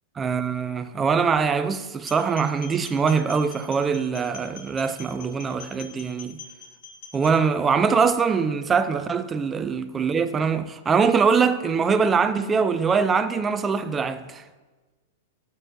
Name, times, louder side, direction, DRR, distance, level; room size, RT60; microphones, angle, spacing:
voice 1, 0.2-6.4 7.1-14.4, right 5 dB, 20° right, 0.5 m, -23 dB
sound 1, 2.0-7.4, left 5 dB, 70° left, 2.8 m, -44 dB
8.7 x 6.8 x 6.2 m
hypercardioid pair, 125°, 0 cm